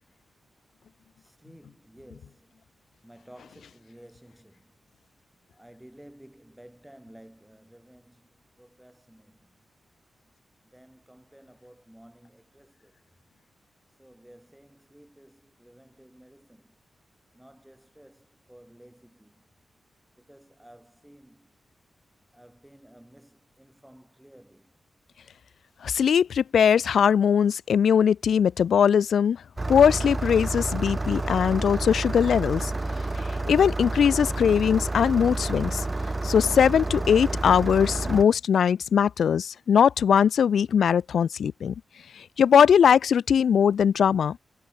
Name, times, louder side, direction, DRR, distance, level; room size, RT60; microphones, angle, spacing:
voice 1, 1.2-2.7 3.0-4.8 5.5-8.3 8.6-9.7 10.6-13.0 14.0-16.8 17.3-19.5 20.2-21.6 22.3-24.8 42.3-42.4, right 1 dB, 5° right, 5.4 m, -53 dB
voice 2, 25.8-29.4 29.7-32.7 33.1-35.8 36.2-41.7 42.1-44.4, left 7 dB, 85° left, 0.5 m, -21 dB
Engine starting, 29.6-38.2, right 2 dB, 25° right, 0.7 m, -29 dB
cardioid pair, 85°, 0 cm